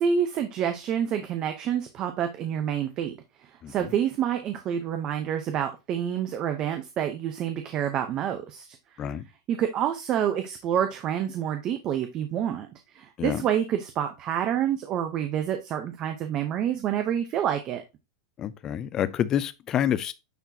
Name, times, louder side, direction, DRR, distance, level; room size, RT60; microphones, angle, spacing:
voice 1, 0.0-3.1 3.7-8.7 9.5-12.7 12.9-17.8, right 9 dB, 25° right, 0.8 m, -28 dB
voice 2, 18.4-20.1, left 10 dB, 20° left, 0.5 m, -28 dB
9.2 x 4.3 x 2.8 m
supercardioid pair, 175°, 3 cm